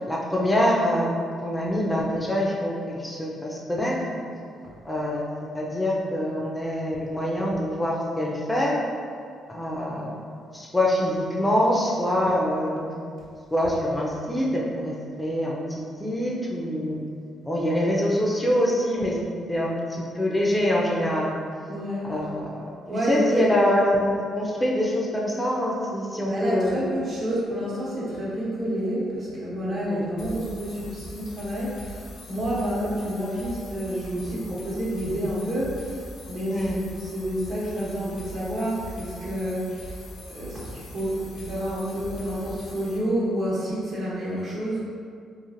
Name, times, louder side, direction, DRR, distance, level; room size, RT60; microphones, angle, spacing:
voice 1, 0.1-1.1 1.4-4.2 4.8-5.3 5.5-8.8 9.5-10.2 10.5-12.9 13.5-17.0 17.4-19.2 19.5-21.3 22.0-22.7 23.1-26.9 29.8-30.2 36.5-36.8, left 1 dB, 10° left, -3 dB, 0.4 m, -25 dB
voice 2, 21.7-22.1 22.9-23.5 26.3-36.0 36.3-40.0 40.3-44.8, equal, 60° right, -8 dB, 1.0 m, -29 dB
sound 1, 30.2-43.0, equal, 75° left, 0.4 m, -41 dB
3.0 x 2.4 x 2.4 m, 2.2 s
cardioid pair, 90°, 0 cm